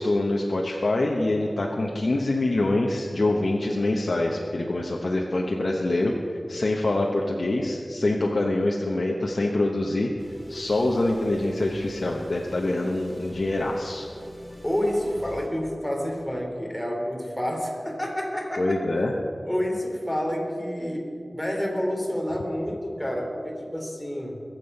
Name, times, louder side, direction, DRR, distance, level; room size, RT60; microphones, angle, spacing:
voice 1, 0.0-10.1 10.5-14.1 18.6-19.1, left 2 dB, 70° left, -1 dB, 1.1 m, -25 dB
sound 1, 10.2-15.5, equal, 15° right, 2.8 m, -45 dB
voice 2, 14.6-18.8 19.4-24.4, equal, 10° left, 0 dB, 2.9 m, -29 dB
22.0 x 7.7 x 5.5 m, 2.6 s
wide cardioid pair, 55°, 0 cm